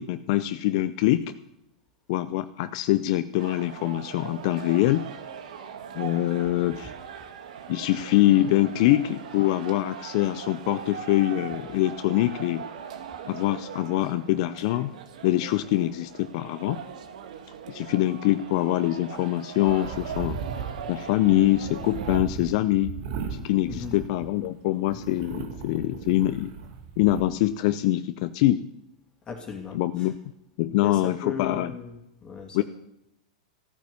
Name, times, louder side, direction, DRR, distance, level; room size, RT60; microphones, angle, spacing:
voice 1, 0.0-1.3 2.1-5.1 5.9-6.9 7.7-12.7 13.3-14.9 15.2-16.8 17.7-20.4 20.9-23.0 23.3-26.5 27.0-28.6 29.7-30.2 30.6-31.7 32.5-32.6, left 15 dB, 55° left, 12 dB, 0.5 m, -24 dB
sound 1, 3.4-22.2, right 7 dB, 70° right, 1.5 m, -40 dB
sound 2, 19.7-24.5 24.8-27.2, right 6 dB, 55° right, 2.0 m, -37 dB
voice 2, 29.3-30.1 30.7-32.0 32.2-32.6, left 6 dB, 20° left, 2 dB, 2.6 m, -36 dB
14.0 x 9.2 x 7.0 m, 0.82 s
hypercardioid pair, 115°, 4 cm